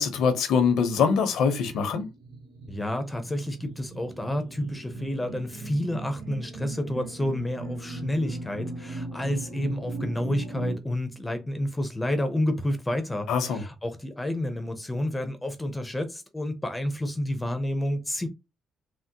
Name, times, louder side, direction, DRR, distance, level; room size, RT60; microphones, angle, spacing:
voice 1, 0.0-2.1 13.3-13.6, left 6 dB, 80° left, 0.8 m, -23 dB
sound 1, 1.2-10.8, right 3 dB, 85° right, 0.8 m, -38 dB
voice 2, 2.7-18.3, left 1 dB, 10° left, 0.7 m, -30 dB
3.6 x 2.0 x 2.8 m
cardioid pair, 90°, 0 cm